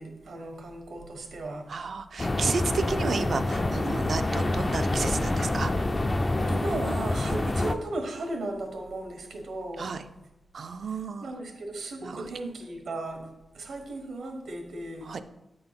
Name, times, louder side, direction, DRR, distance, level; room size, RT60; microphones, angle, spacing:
voice 1, 0.0-1.7 6.5-9.9 10.9-13.3 13.5-15.1, right 2 dB, 85° right, 3 dB, 1.3 m, -36 dB
voice 2, 1.7-5.7 7.3-7.4 9.8-10.0 10.5-11.3 12.0-12.3 15.0-15.2, right 5 dB, 55° right, 10 dB, 0.5 m, -32 dB
sound 1, 2.2-7.7, left 2 dB, 25° left, 0.4 m, -27 dB
8.7 x 3.9 x 5.7 m, 0.95 s
wide cardioid pair, 145°, 0 cm